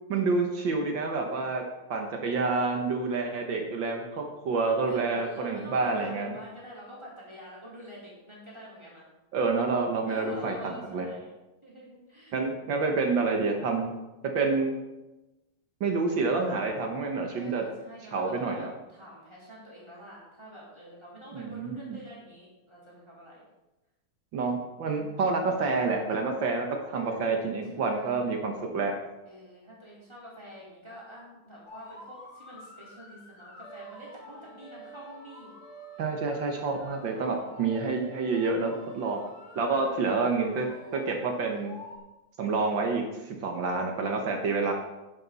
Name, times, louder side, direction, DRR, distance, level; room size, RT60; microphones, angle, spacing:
voice 1, 0.1-1.6 1.9-6.4 9.3-11.1 12.3-13.9 14.2-14.8 15.8-17.6 18.1-18.7 21.3-22.0 24.3-29.0 36.0-39.2 39.6-41.7 42.4-44.7, right 4 dB, 65° right, 3 dB, 1.8 m, -28 dB
voice 2, 4.8-9.1 10.1-11.3 11.6-12.4 17.4-23.4 26.9-27.2 27.7-28.4 29.3-35.5 37.6-37.8 39.8-40.4, equal, 10° right, -6 dB, 4.2 m, -47 dB
sound 1, 31.7-42.0, right 1 dB, 50° left, 2.5 m, -48 dB
10.5 x 10.5 x 4.1 m, 1.0 s
omnidirectional pair, 2.3 m